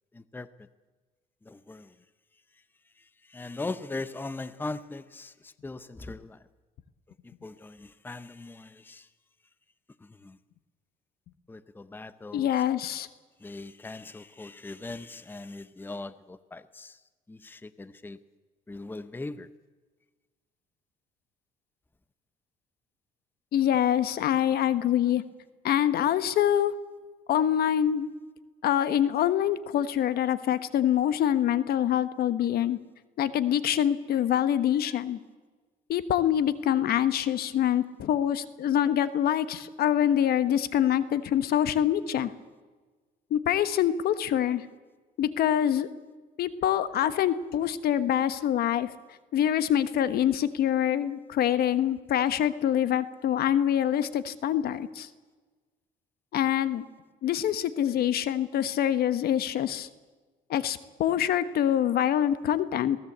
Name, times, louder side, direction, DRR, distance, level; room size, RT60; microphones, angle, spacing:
voice 1, 1.5-1.8 3.3-5.3 5.6-6.4 7.4-9.0 10.2-10.3 11.5-12.5 13.4-16.9 17.3-18.2 18.7-19.5, left 3 dB, 10° left, 14 dB, 0.8 m, -39 dB
voice 2, 12.3-13.1 23.5-25.2 25.6-26.7 27.3-28.1 28.6-32.8 33.2-35.2 35.9-42.3 43.3-44.7 45.2-45.9 46.4-48.9 49.3-55.1 56.3-56.8 57.2-59.9 60.5-63.0, left 10 dB, 65° left, 13 dB, 1.2 m, -25 dB
22.5 x 17.0 x 8.1 m, 1.3 s
cardioid pair, 110°, 17 cm